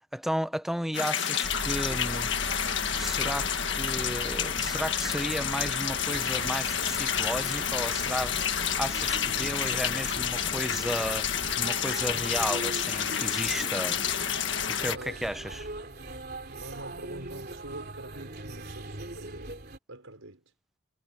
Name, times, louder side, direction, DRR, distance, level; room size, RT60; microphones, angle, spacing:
voice 1, 0.1-2.3 3.0-14.0 14.7-15.7, equal, ahead, 0.8 m, -33 dB
sound 1, 0.9-15.0, left 8 dB, 60° left, 1.8 m, -29 dB
sound 2, 1.4-19.8, right 1 dB, 50° right, 3.2 m, -41 dB
voice 2, 14.7-15.4 16.5-19.6 19.9-20.4, right 2 dB, 85° right, 5.0 m, -45 dB
head